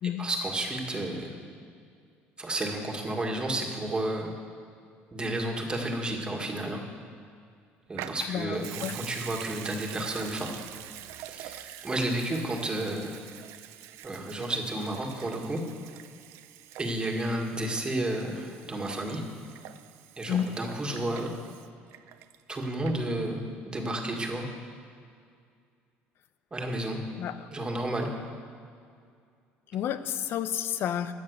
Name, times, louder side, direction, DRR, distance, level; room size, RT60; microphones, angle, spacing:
voice 1, 0.2-1.4 2.4-4.3 5.1-6.8 7.9-10.6 11.2-13.2 14.0-15.6 16.8-19.2 20.2-21.4 22.5-24.5 26.5-27.0 27.5-28.1, right 1 dB, 20° right, 2 dB, 2.0 m, -31 dB
Water tap faucet / Sink (filling or washing) / Liquid, 7.9-22.6 22.9-23.0, right 13 dB, 80° right, 0.6 m, -45 dB
voice 2, 8.2-9.0 20.3-20.5 27.2-27.5 29.7-31.1, left 9 dB, 60° left, 12 dB, 0.7 m, -31 dB
15.0 x 9.4 x 6.6 m, 2.2 s
cardioid pair, 110°, 5 cm